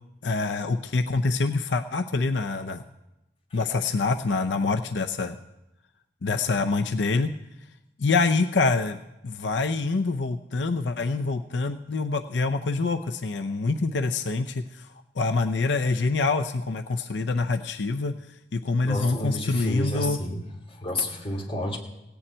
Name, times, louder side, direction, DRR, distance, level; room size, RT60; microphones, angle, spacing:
voice 1, 0.2-2.8 3.5-5.4 6.2-7.3 8.0-9.0 9.2-14.9 15.2-18.2 18.5-20.2, left 3 dB, 85° left, 7 dB, 0.6 m, -25 dB
voice 2, 18.8-20.4 20.7-21.8, left 1 dB, 30° left, 0 dB, 2.6 m, -30 dB
17.0 x 7.1 x 8.8 m, 0.94 s
head